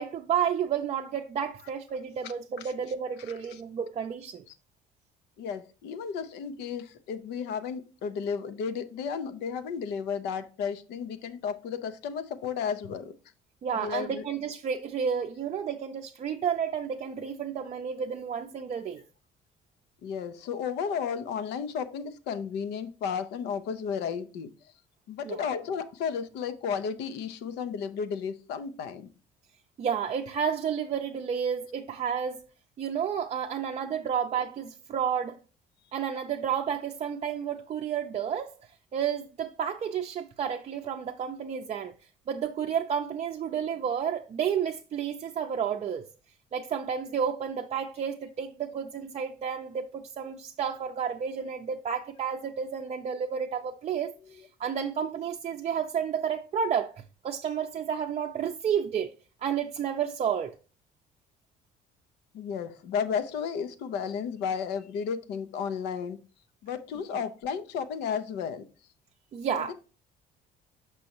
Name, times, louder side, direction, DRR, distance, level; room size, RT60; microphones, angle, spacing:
voice 1, 0.0-4.4 13.6-19.0 25.2-25.5 29.8-32.4 32.8-35.4 35.9-38.6 38.9-41.9 42.3-46.0 46.5-56.9 57.2-59.1 59.4-60.5 67.1-67.2 69.3-69.7, right 7 dB, 40° right, 0.5 m, -31 dB
voice 2, 5.4-13.1 13.8-14.2 20.0-24.5 25.1-29.1 62.3-66.2 66.6-68.7 69.7-69.8, left 6 dB, 85° left, 0.7 m, -33 dB
6.1 x 5.3 x 2.9 m
cardioid pair, 110°, 17 cm